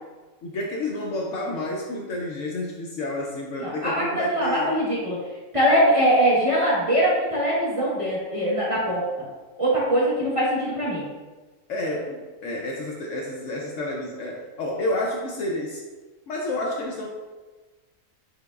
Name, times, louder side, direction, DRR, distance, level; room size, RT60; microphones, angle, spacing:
voice 1, 0.4-4.7 11.7-15.9 16.3-17.1, left 1 dB, 65° left, -1 dB, 0.9 m, -30 dB
voice 2, 3.6-5.2 5.5-9.0 9.6-11.1, equal, 25° right, -7 dB, 1.1 m, -22 dB
5.2 x 3.6 x 2.3 m, 1.2 s
omnidirectional pair, 1.5 m